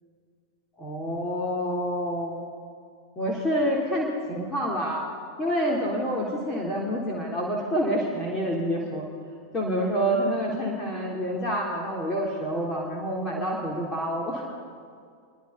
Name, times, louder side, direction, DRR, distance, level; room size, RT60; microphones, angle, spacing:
voice 1, 0.8-2.4 3.2-5.0 5.4-9.1 9.5-14.4, equal, 20° left, -2 dB, 3.7 m, -27 dB
26.0 x 23.5 x 4.2 m, 2.2 s
figure-of-eight pair, 90°, 0 cm